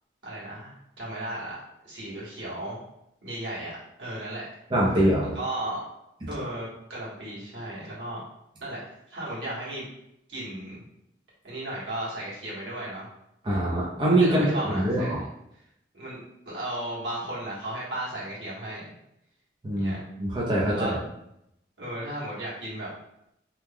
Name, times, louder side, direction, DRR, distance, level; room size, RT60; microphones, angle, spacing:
voice 1, 0.2-1.6 1.8-2.8 3.2-4.5 5.3-5.8 6.3-8.2 8.6-8.8 9.1-9.9 10.3-10.8 11.4-13.1 14.2-15.3 15.9-16.2 16.4-18.9 19.8-20.0 20.7-20.9 21.8-22.9, right 1 dB, 90° right, -7 dB, 1.5 m, -35 dB
voice 2, 4.7-5.3 13.4-15.2 19.6-21.0, right 1 dB, 25° right, -6 dB, 0.6 m, -24 dB
2.9 x 2.2 x 3.5 m, 0.80 s
head